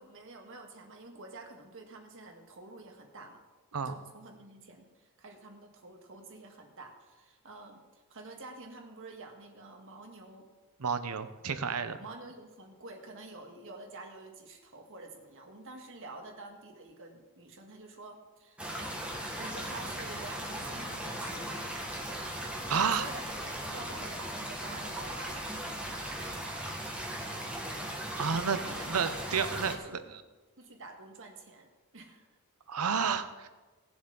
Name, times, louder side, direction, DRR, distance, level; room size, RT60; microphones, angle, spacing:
voice 1, 0.0-3.4 3.8-10.5 12.0-19.0 19.4-21.7 23.0-25.6 28.5-28.9 29.2-30.1 30.6-32.2, right 2 dB, 60° right, 3 dB, 1.6 m, -49 dB
voice 2, 10.8-12.0 22.7-23.1 28.2-28.6 28.9-30.2 32.7-33.5, right 6 dB, 90° right, 11 dB, 0.8 m, -31 dB
sound 1, 18.6-29.8, right 1 dB, 5° right, 1.4 m, -38 dB
18.0 x 7.2 x 3.9 m, 1.2 s
head